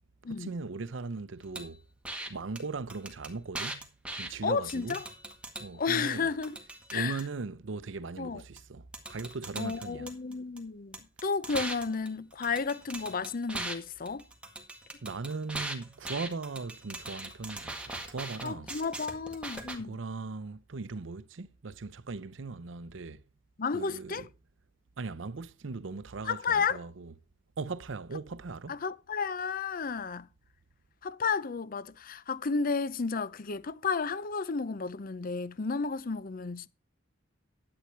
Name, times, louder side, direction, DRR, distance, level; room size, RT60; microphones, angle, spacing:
voice 1, 0.3-1.8 2.3-3.9 4.2-5.0 5.6-6.3 6.9-10.1 15.0-18.7 19.7-23.2 23.7-24.3 25.0-27.1 27.6-28.8, right 3 dB, 70° right, 0.6 m, -39 dB
sound 1, 1.5-1.7 2.0-2.3 2.6-2.7 2.9-4.3 4.7-5.7 6.1-7.2 8.6-8.7 8.9-10.6 10.9-13.8 14.1-19.8, right 2 dB, 5° right, 1.8 m, -40 dB
voice 2, 4.4-5.1 5.7-6.6 6.9-7.2 8.2-8.4 9.6-14.3 18.4-20.0 23.6-24.2 26.2-26.8 28.7-30.3 31.0-36.7, left 5 dB, 45° left, 0.6 m, -32 dB
11.5 x 8.8 x 4.5 m
head